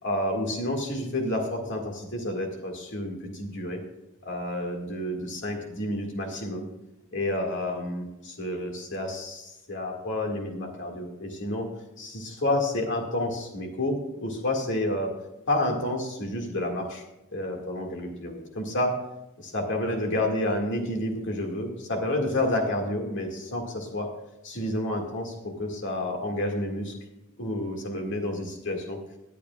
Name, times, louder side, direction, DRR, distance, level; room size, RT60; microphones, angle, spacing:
voice 1, 0.0-3.8 4.2-6.7 7.1-11.7 12.0-15.1 15.5-17.0 17.3-18.9 19.4-24.1 24.4-26.9 27.4-29.0, left 1 dB, 55° left, 1 dB, 2.0 m, -30 dB
20.5 x 8.3 x 2.4 m, 0.93 s
head